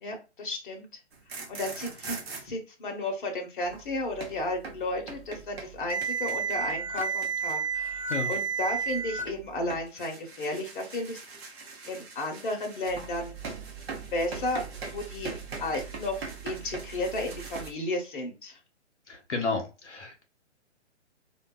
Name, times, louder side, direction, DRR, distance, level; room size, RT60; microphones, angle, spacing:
voice 1, 0.0-0.9 1.5-8.0 8.3-11.2 11.9-13.3 14.1-15.3 15.6-18.6, left 2 dB, 45° left, 3 dB, 0.8 m, -33 dB
sound 1, 1.1-2.4 3.6-17.7, right 5 dB, 60° right, 0.8 m, -36 dB
voice 2, 19.1-20.2, left 4 dB, 75° left, 2 dB, 0.8 m, -32 dB
2.5 x 2.2 x 2.2 m, 0.29 s
figure-of-eight pair, 130°, 35 cm